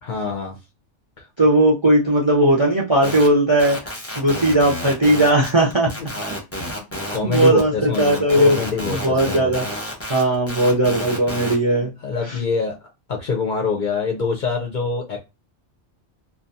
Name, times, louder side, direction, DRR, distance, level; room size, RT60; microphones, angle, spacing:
voice 1, 0.0-0.6 7.1-9.5 10.1-10.3 12.0-15.2, left 5 dB, 55° left, 0.6 m, -25 dB
voice 2, 1.4-3.8 4.2-5.9 7.2-8.6 8.9-9.6 10.1-11.9, right 1 dB, 35° right, 0.5 m, -17 dB
sound 1, 3.0-3.3 3.6-7.6 7.9-11.6, equal, 15° left, 0.6 m, -30 dB
2.6 x 2.2 x 2.5 m
omnidirectional pair, 1.2 m